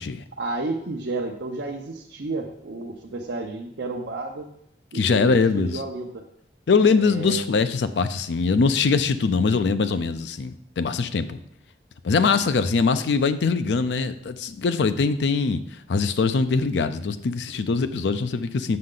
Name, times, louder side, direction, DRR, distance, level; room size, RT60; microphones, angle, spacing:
voice 1, 0.4-4.5 4.9-6.1 7.0-7.4 17.5-17.7, right 2 dB, 80° right, 0 dB, 0.7 m, -31 dB
voice 2, 4.9-5.8 6.7-11.4 12.0-18.8, left 4 dB, 80° left, 11 dB, 0.4 m, -22 dB
7.6 x 6.4 x 3.8 m, 0.74 s
head